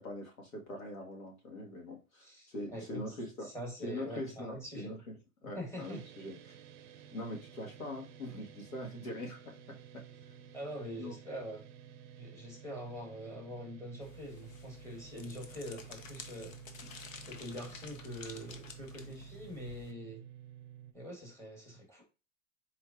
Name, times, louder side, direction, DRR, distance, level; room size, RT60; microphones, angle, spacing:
voice 1, 0.0-3.5 3.8-5.1 5.4-6.5 7.1-10.1 11.0-11.1 16.8-16.9, left 1 dB, 90° left, 1.7 m, -43 dB
voice 2, 2.2-4.9 5.4-6.0 10.5-11.6 12.2-16.6 17.3-20.2 20.9-22.0, equal, 5° left, 1.4 m, -44 dB
sound 1, 5.8-20.9, right 9 dB, 35° right, 0.6 m, -53 dB
sound 2, 14.0-19.9, left 5 dB, 70° left, 1.0 m, -51 dB
4.4 x 4.3 x 2.4 m
hypercardioid pair, 125°, 40 cm